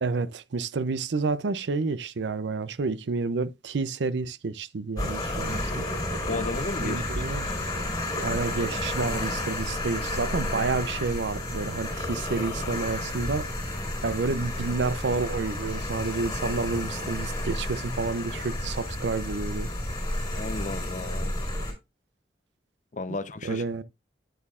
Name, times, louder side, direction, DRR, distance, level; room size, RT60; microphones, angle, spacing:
voice 1, 0.0-5.9 6.8-7.5 8.2-13.5 14.0-19.7 23.4-23.8, right 4 dB, 85° right, 0.5 m, -29 dB
sound 1, 5.0-21.7, left 1 dB, 20° left, 4.0 m, -31 dB
voice 2, 6.3-7.2 20.3-21.4 22.9-23.6, left 3 dB, 45° left, 0.7 m, -34 dB
9.2 x 8.3 x 2.4 m
head